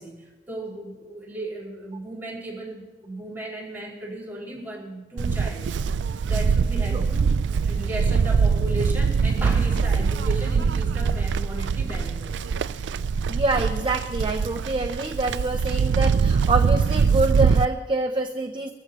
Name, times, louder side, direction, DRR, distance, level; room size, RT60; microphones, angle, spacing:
voice 1, 0.0-5.7 6.2-7.3 7.6-12.5, right 1 dB, 10° right, -4 dB, 5.9 m, -35 dB
Livestock farm animals working animals, 5.2-17.7, right 5 dB, 70° right, 0.4 m, -23 dB
voice 2, 13.3-18.7, right 2 dB, 30° right, 5 dB, 0.7 m, -26 dB
23.0 x 14.5 x 3.1 m, 1.2 s
head